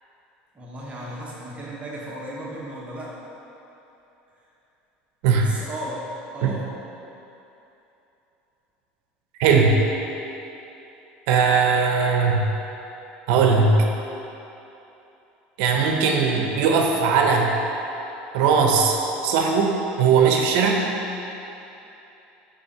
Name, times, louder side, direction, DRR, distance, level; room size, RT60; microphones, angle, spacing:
voice 1, 0.5-3.2 5.3-6.0 6.3-6.6, right 1 dB, 25° right, -5 dB, 1.1 m, -35 dB
voice 2, 9.4-9.7 11.3-12.4 13.3-13.8 15.6-17.6 18.3-19.0 19.2-20.8, right 5 dB, 75° right, 1 dB, 0.7 m, -19 dB
5.3 x 4.2 x 4.4 m, 3.0 s
supercardioid pair, 100°, 5 cm